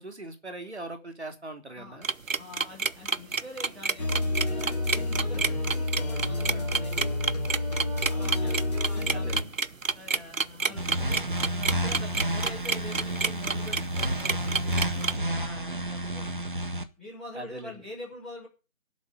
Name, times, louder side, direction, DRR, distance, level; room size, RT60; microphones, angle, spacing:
voice 1, 0.0-2.1 8.2-8.8 9.1-9.5 10.7-10.8 17.3-17.8, right 2 dB, 55° right, 6 dB, 3.3 m, -41 dB
sound 1, 2.0-15.1, right 4 dB, 75° right, 1.1 m, -29 dB
voice 2, 2.4-7.3 7.6-9.5 9.9-11.2 11.5-16.3 17.0-18.5, left 2 dB, ahead, -12 dB, 3.6 m, -45 dB
sound 2, 4.0-9.4, left 2 dB, 30° left, 3.6 m, -29 dB
sound 3, 10.8-16.8, right 1 dB, 40° right, 1.6 m, -30 dB
11.5 x 7.1 x 9.6 m, 0.33 s
figure-of-eight pair, 170°, 40 cm